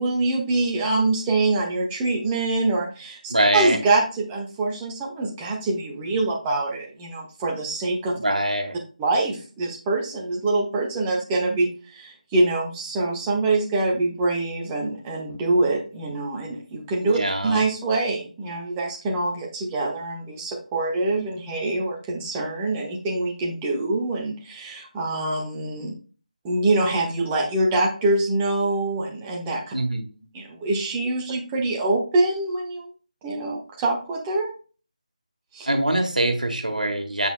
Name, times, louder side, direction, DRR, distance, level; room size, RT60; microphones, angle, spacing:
voice 1, 0.0-8.2 9.0-25.9 26.4-29.7 30.3-32.9 33.2-34.5 35.5-35.7, right 2 dB, 10° right, -1 dB, 1.1 m, -25 dB
voice 2, 3.3-3.8 8.2-8.8 17.0-17.6 29.7-30.2 35.6-37.3, right 1 dB, 80° right, 4 dB, 1.6 m, -23 dB
7.7 x 5.7 x 2.2 m, 0.37 s
figure-of-eight pair, 165°, 4 cm